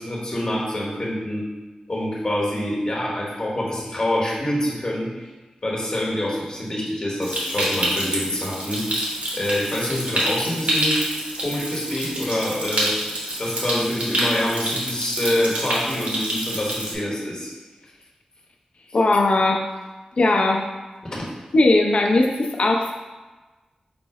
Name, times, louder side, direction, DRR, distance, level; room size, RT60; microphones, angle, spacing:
voice 1, 0.0-1.4 1.9-5.3 5.6-8.8 9.3-11.0 11.4-12.9 13.4-17.5 21.1-21.2, left 1 dB, 40° left, -4 dB, 1.2 m, -26 dB
Stream, 7.2-16.9, right 1 dB, 65° right, 1.0 m, -27 dB
voice 2, 18.9-19.6 20.2-20.6 21.5-22.9, left 2 dB, 60° left, 0 dB, 0.6 m, -18 dB
5.2 x 2.1 x 4.7 m, 1.2 s
wide cardioid pair, 85°, 2 cm